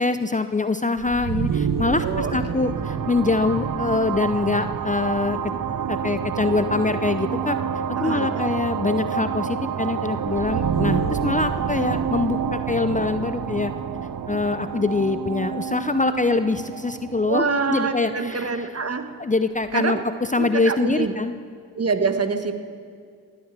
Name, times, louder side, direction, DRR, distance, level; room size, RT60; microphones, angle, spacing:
voice 1, 0.0-5.4 5.9-13.7 14.3-18.7 19.2-20.0 20.3-21.3, left 3 dB, 20° left, 10 dB, 0.7 m, -24 dB
sound 1, 1.0-18.6, right 7 dB, 55° right, 0.9 m, -28 dB
voice 2, 1.9-2.7 7.9-8.4 17.3-19.1 19.7-20.0 20.4-21.1 21.7-22.5, right 4 dB, 40° right, 8 dB, 1.5 m, -26 dB
18.0 x 9.4 x 7.5 m, 2.2 s
supercardioid pair, 45°, 39 cm